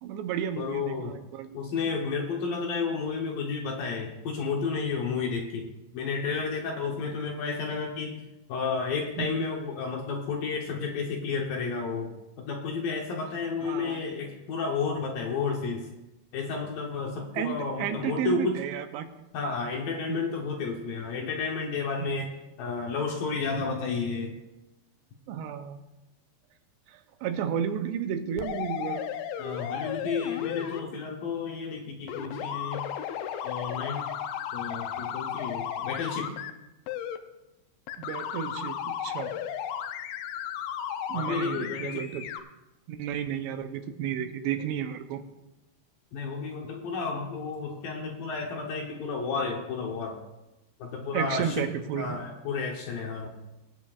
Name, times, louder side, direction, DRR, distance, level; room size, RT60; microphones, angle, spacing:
voice 1, 0.0-1.6 9.2-9.3 13.6-14.0 17.3-19.1 20.1-20.3 23.6-23.7 25.3-25.8 26.9-29.1 38.0-39.4 41.1-42.3 42.9-45.2 51.1-52.2, right 9 dB, 80° right, 8 dB, 2.9 m, -32 dB
voice 2, 0.6-1.2 1.5-8.2 8.5-12.1 12.4-15.9 16.3-18.6 19.3-22.3 22.6-24.3 29.4-32.8 33.4-34.1 34.5-36.3 41.1-42.1 46.1-50.2 50.8-51.7 52.0-53.3, left 4 dB, 70° left, 1 dB, 2.3 m, -31 dB
sound 1, 28.4-30.8 32.1-36.5 36.9-37.2 37.9-42.4, left 9 dB, 85° left, 2.1 m, -34 dB
21.0 x 9.4 x 2.5 m, 0.98 s
omnidirectional pair, 5.0 m